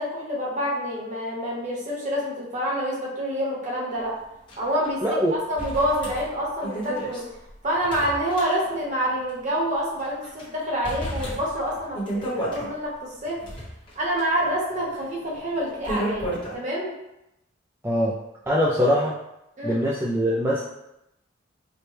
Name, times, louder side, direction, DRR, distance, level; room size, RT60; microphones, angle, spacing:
voice 1, 0.0-4.1 4.6-7.2 7.6-13.4 13.9-16.9 19.6-19.8, equal, 40° right, -4 dB, 0.9 m, -27 dB
sound 1, 4.5-4.6 4.8-4.9 5.6-9.0 9.3-9.4 10.0-10.4 10.8-12.7 13.2-16.5, right 1 dB, 25° left, 1.2 m, -33 dB
voice 2, 5.0-5.3 17.8-18.2 18.5-19.1 19.6-20.6, equal, 10° right, -6 dB, 0.3 m, -22 dB
4.3 x 2.2 x 3.3 m, 0.89 s
head